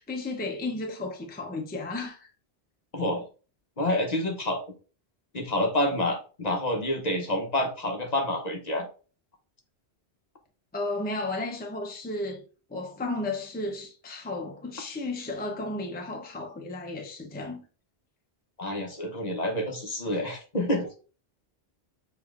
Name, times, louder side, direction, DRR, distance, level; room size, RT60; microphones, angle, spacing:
voice 1, 0.0-2.3 10.7-12.4 12.7-17.6, left 2 dB, 10° left, 0.6 m, -33 dB
voice 2, 3.8-4.6 5.3-8.9 18.6-20.9, left 1 dB, 45° left, 0.9 m, -28 dB
6.7 x 3.1 x 2.4 m
omnidirectional pair, 1.1 m